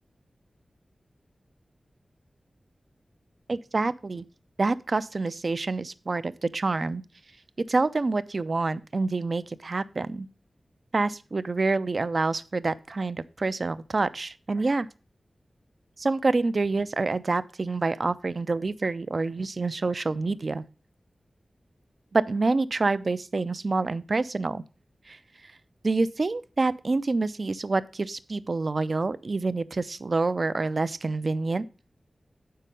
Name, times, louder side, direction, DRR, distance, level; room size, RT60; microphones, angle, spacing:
voice 1, 3.5-4.2 4.6-7.0 7.6-10.3 10.9-14.9 16.0-20.6 22.1-24.6 25.1-25.2 25.8-31.7, right 3 dB, 50° right, 15 dB, 0.4 m, -27 dB
7.3 x 5.6 x 5.2 m, 0.34 s
wide cardioid pair, 75°, 0 cm